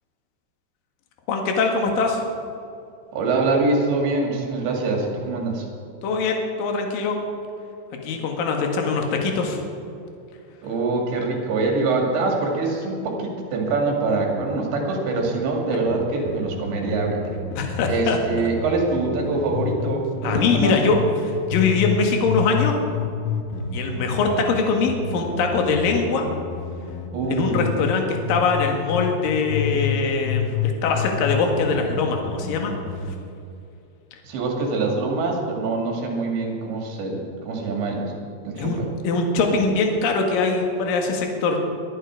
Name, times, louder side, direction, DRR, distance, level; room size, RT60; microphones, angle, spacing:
voice 1, 1.3-2.2 6.0-7.2 8.0-9.6 17.5-18.5 20.2-22.7 23.7-26.3 27.3-32.7 38.6-41.6, left 4 dB, 60° left, 2 dB, 3.0 m, -22 dB
voice 2, 3.1-5.6 10.6-17.4 17.9-20.7 27.1-27.8 34.2-38.1 38.4-38.8, right 3 dB, 70° right, 0 dB, 4.6 m, -24 dB
sound 1, 15.9-20.0 20.3-22.0 22.3-28.0 28.3-30.0 30.3-33.1, left 7 dB, 85° left, 3.8 m, -28 dB
21.5 x 12.5 x 4.8 m, 2.5 s
omnidirectional pair, 5.5 m